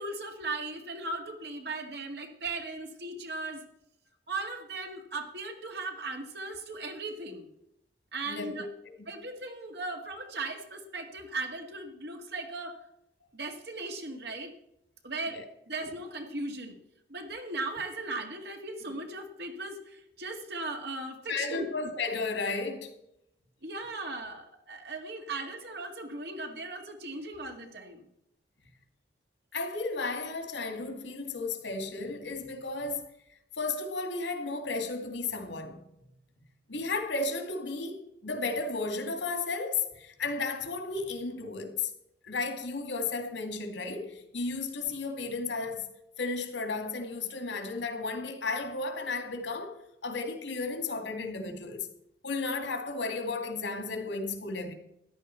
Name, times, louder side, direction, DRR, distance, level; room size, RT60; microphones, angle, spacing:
voice 1, 0.0-3.6 4.3-7.5 8.1-8.7 9.1-12.8 13.3-14.5 15.0-15.4 15.7-16.8 17.1-21.7 23.6-28.1, right 2 dB, 60° right, 2.1 m, -37 dB
voice 2, 8.3-8.7 15.3-15.4 21.3-22.9 29.5-33.1 33.6-35.9 36.7-41.9 42.2-45.9 46.2-51.9 52.2-54.7, left 3 dB, 90° left, 2.1 m, -34 dB
14.0 x 10.5 x 4.5 m
head